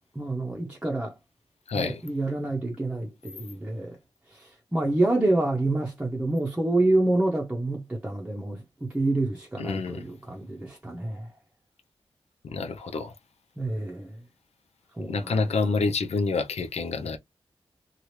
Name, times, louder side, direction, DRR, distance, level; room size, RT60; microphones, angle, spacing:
voice 1, 0.1-1.2 1.7-4.0 4.3-11.3 13.6-14.2 14.9-15.5, right 2 dB, 10° right, 0.7 m, -27 dB
voice 2, 1.7-2.0 9.6-10.0 12.4-13.1 15.0-17.2, left 4 dB, 90° left, 0.7 m, -28 dB
2.9 x 2.4 x 3.2 m
wide cardioid pair, 110°, 11 cm